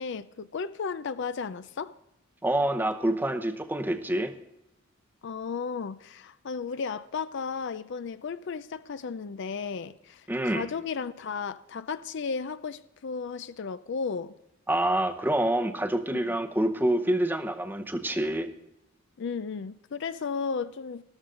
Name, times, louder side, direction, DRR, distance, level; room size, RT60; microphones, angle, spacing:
voice 1, 0.0-1.9 5.2-14.3 16.1-16.4 19.2-21.0, left 5 dB, 55° left, 0.4 m, -34 dB
voice 2, 2.4-4.3 10.3-10.7 14.7-18.5, right 1 dB, 10° right, 0.8 m, -27 dB
13.5 x 13.0 x 3.7 m
head